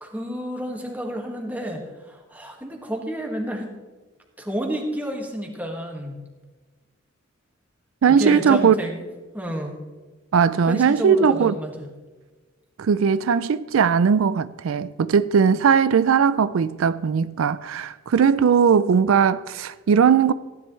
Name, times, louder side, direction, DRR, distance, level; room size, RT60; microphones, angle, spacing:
voice 1, 0.0-3.7 4.4-6.2 8.1-9.0 9.3-9.8 10.7-11.9, equal, 10° right, 1.8 m, -30 dB
voice 2, 8.0-8.7 10.3-11.5 12.8-20.3, right 6 dB, 90° right, 0.4 m, -19 dB
15.5 x 10.5 x 3.2 m
head